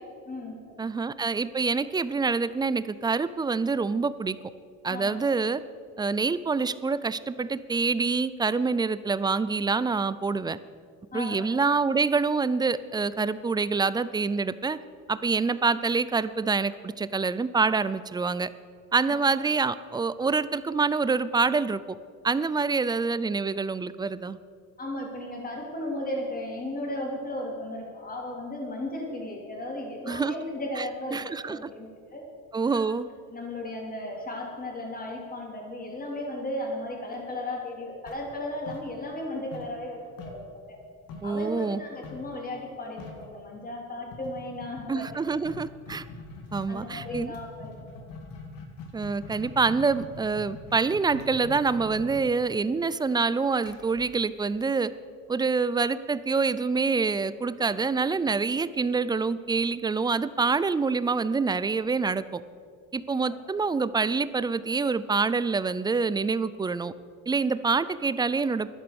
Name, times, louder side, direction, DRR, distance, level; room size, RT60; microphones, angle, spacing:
voice 1, 0.3-0.9 4.9-5.2 11.1-11.5 19.1-19.2 24.8-31.2 31.5-32.3 32.7-32.8 33.3-40.8 41.2-45.2 46.7-47.8 63.3-63.4, left 1 dB, 25° left, 0 dB, 3.4 m, -35 dB
voice 2, 0.8-4.4 4.8-5.6 6.0-10.6 11.1-14.8 15.1-18.5 18.9-22.0 22.2-24.4 30.1-30.4 30.8-30.9 31.1-31.6 32.5-33.1 41.2-41.8 44.9-46.1 46.5-47.3 48.9-54.9 55.3-62.4 62.9-66.9 67.3-68.7, right 4 dB, 15° right, 16 dB, 0.3 m, -26 dB
sound 1, 38.1-39.3 39.5-41.4 42.0-42.3 42.6-42.7 43.0-43.3 44.1-54.9, left 4 dB, 70° left, 2.1 m, -43 dB
12.0 x 10.5 x 7.0 m, 2.1 s
cardioid pair, 120°, 35 cm